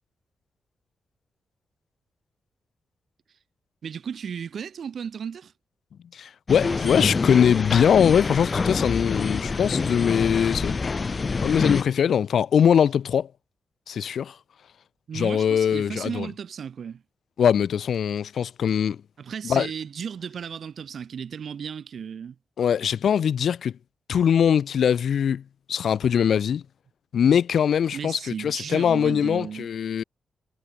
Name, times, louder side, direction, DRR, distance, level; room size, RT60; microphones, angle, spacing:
voice 1, 3.8-5.5 6.5-7.1 15.1-17.0 19.2-22.3 27.9-29.7, right 7 dB, 55° right, 3.3 m, -35 dB
voice 2, 6.1-10.7 11.4-13.3 13.9-14.4 15.1-16.3 17.4-19.0 19.4-19.7 22.6-23.7 24.1-25.4 25.7-26.6 27.1-30.0, left 8 dB, 65° left, 2.0 m, -22 dB
sound 1, 6.5-11.8, left 4 dB, 30° left, 1.4 m, -26 dB
wide cardioid pair, 170°, 0 cm